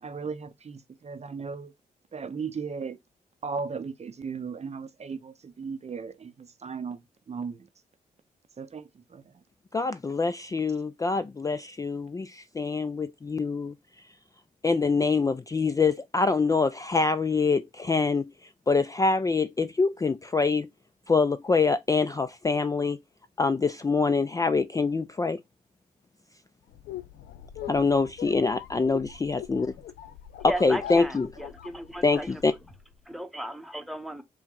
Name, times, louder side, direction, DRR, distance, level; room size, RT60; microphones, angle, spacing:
voice 1, 0.0-1.7 2.1-3.0 3.4-7.0 7.3-7.7 8.6-9.2, right 5 dB, 40° right, 0.6 m, -36 dB
voice 2, 9.7-13.7 14.6-18.3 18.7-20.7 21.1-23.0 23.4-25.4 27.7-29.7 30.4-31.3 32.0-32.5, left 4 dB, 20° left, 0.3 m, -25 dB
sound 1, 26.7-32.9, left 10 dB, 90° left, 0.5 m, -42 dB
voice 3, 30.5-32.3 33.1-34.2, equal, ahead, 0.9 m, -35 dB
4.5 x 2.1 x 3.7 m
supercardioid pair, 55°, 16 cm